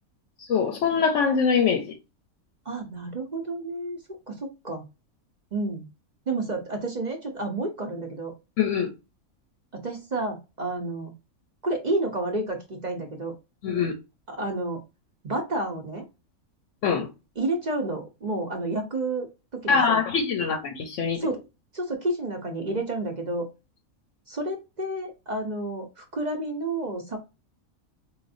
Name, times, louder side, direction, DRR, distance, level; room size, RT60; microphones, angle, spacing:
voice 1, 0.5-1.9 8.6-8.9 13.6-13.9 16.8-17.1 19.7-21.3, left 6 dB, 65° left, 0.9 m, -23 dB
voice 2, 2.7-4.0 4.3-4.8 5.5-5.8 6.3-8.3 9.7-11.1 11.6-13.3 14.3-14.8 15.2-16.0 17.4-20.0 21.2-21.4 21.7-23.5 24.3-27.2, right 2 dB, 40° right, 0.7 m, -30 dB
4.9 x 2.5 x 2.5 m
omnidirectional pair, 1.5 m